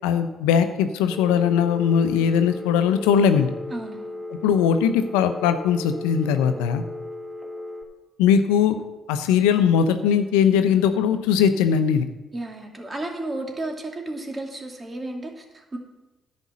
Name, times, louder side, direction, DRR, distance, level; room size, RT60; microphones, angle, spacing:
voice 1, 0.0-3.5 4.4-6.8 8.2-8.8 9.1-12.0, left 7 dB, 85° left, 9 dB, 0.7 m, -20 dB
Telephone, 1.1-7.8, left 2 dB, 15° right, 1.8 m, -36 dB
voice 2, 3.7-4.2 12.3-15.8, right 2 dB, 30° right, 2 dB, 2.5 m, -33 dB
11.0 x 5.3 x 8.5 m, 1.1 s
supercardioid pair, 55°, 0 cm